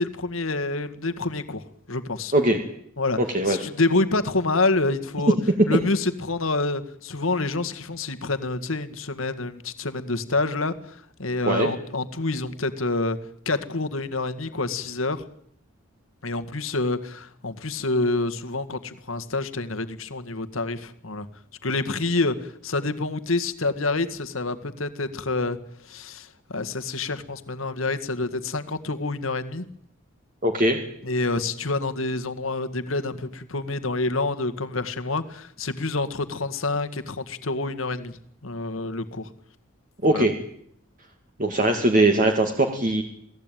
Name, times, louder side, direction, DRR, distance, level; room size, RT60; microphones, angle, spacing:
voice 1, 0.0-2.3 3.0-3.2 3.5-5.4 5.7-13.2 13.4-15.2 16.2-21.3 21.6-25.6 25.8-29.7 31.0-39.3 40.0-40.3, left 2 dB, 85° left, 9 dB, 1.8 m, -27 dB
voice 2, 3.2-3.6 11.5-11.7 30.4-30.8 40.0-40.3 41.4-43.0, right 1 dB, 40° right, 4 dB, 2.3 m, -20 dB
28.0 x 17.5 x 9.2 m, 0.69 s
head